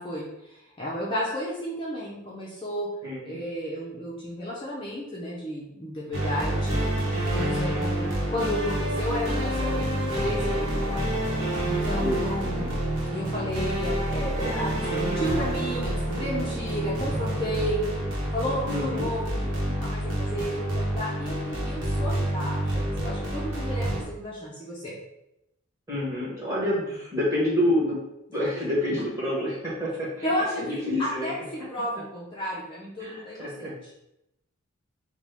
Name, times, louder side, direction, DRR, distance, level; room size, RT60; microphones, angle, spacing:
voice 1, 0.0-2.9 3.2-6.8 7.3-11.0 11.6-17.9 18.3-24.9 30.2-33.8, equal, 25° left, -6 dB, 0.6 m, -32 dB
voice 2, 3.0-3.4 12.0-12.8 18.7-19.1 25.9-28.0 28.3-30.3 30.6-31.3 33.0-33.7, left 1 dB, 15° right, -7 dB, 1.5 m, -28 dB
sound 1, 6.1-24.0, right 1 dB, 65° right, 1.2 m, -28 dB
5.1 x 2.2 x 3.4 m, 0.87 s
head